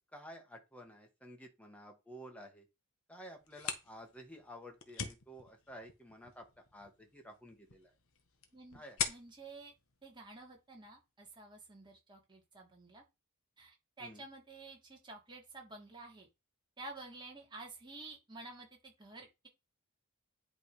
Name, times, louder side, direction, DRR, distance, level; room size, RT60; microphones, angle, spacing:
voice 1, 0.1-2.7 3.1-7.9 8.7-9.1 14.0-14.2, equal, 5° left, 1.9 m, -52 dB
sound 1, 3.3-10.9, left 7 dB, 65° left, 1.4 m, -45 dB
voice 2, 8.5-9.7 10.0-13.0 13.6-16.3 16.8-19.5, right 2 dB, 20° right, 3.1 m, -51 dB
10.5 x 3.9 x 5.1 m
head